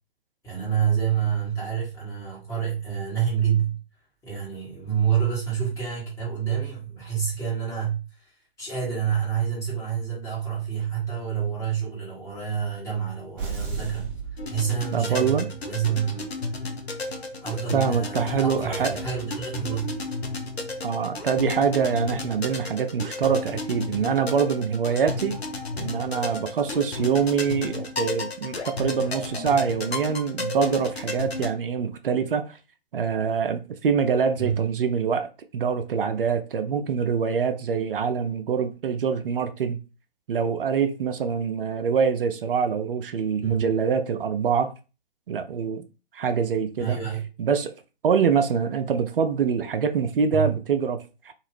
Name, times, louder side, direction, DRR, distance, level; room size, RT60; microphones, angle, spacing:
voice 1, 0.4-3.8 4.2-8.3 8.6-14.1 14.5-16.3 17.4-20.0 34.4-34.6 43.4-43.6 46.8-47.2 50.3-50.5, right 8 dB, 10° left, 1.3 m, -28 dB
sound 1, 13.4-15.2, right 5 dB, 25° right, 0.7 m, -34 dB
sound 2, 14.4-31.5, left 3 dB, 85° left, 0.8 m, -33 dB
voice 2, 14.9-15.5 17.7-18.9 20.8-25.4 25.8-32.6 32.9-35.3 35.5-39.8 40.3-44.7 45.3-45.8 46.1-47.0 47.4-47.7 48.0-51.3, right 6 dB, 60° right, 0.5 m, -24 dB
2.8 x 2.5 x 3.0 m
figure-of-eight pair, 130°, 31 cm